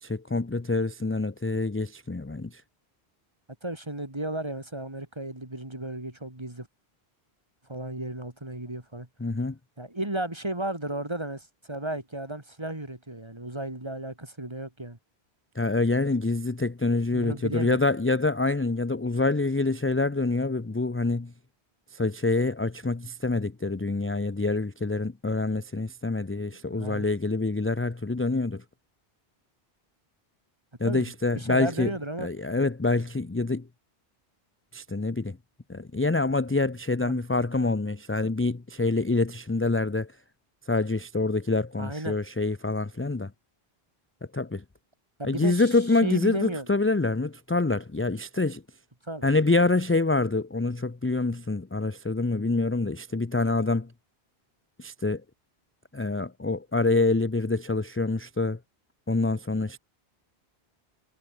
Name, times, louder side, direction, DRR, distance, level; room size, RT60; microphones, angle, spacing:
voice 1, 0.0-2.6 9.2-9.6 15.6-21.3 21.9-28.6 30.8-31.9 32.2-33.7 34.7-35.4 35.7-40.1 40.7-43.3 44.3-44.6 45.2-48.6 49.2-53.9 54.8-55.2 55.9-58.6 59.1-59.8, left 3 dB, 15° left, 0.5 m, -26 dB
voice 2, 3.6-6.7 7.7-9.1 9.8-15.0 17.1-17.8 26.5-27.1 30.9-32.3 37.0-37.2 41.8-42.2 45.2-45.7 46.0-46.7 49.0-49.3, right 1 dB, 25° right, 2.8 m, -34 dB
omnidirectional pair, 1.1 m